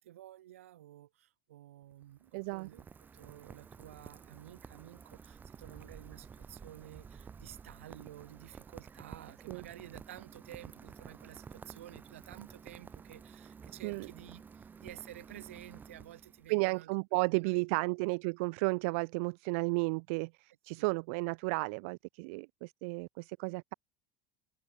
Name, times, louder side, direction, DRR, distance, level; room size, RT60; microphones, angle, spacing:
voice 1, 0.0-2.9 3.1-16.9 17.3-18.0 20.8-20.9, right 13 dB, 90° right, 3.9 m, -52 dB
Rain, 1.8-16.6, right 6 dB, 25° right, 2.7 m, -52 dB
voice 2, 2.3-2.7 9.5-9.6 13.8-14.1 16.5-23.7, right 31 dB, 70° right, 0.4 m, -33 dB
hypercardioid pair, 95°, 7 cm